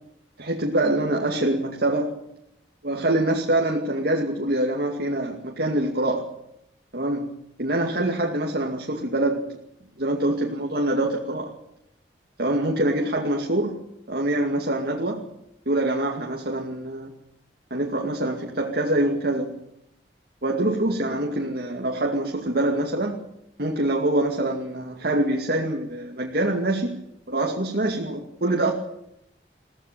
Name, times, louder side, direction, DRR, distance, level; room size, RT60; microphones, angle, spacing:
voice 1, 0.4-2.2 2.8-6.3 6.9-7.3 7.6-9.5 10.0-11.5 12.4-15.3 15.7-17.1 17.7-19.6 20.4-23.3 23.6-26.9 27.3-28.7, right 1 dB, 60° right, 1 dB, 2.4 m, -25 dB
22.0 x 16.5 x 8.9 m, 0.79 s
head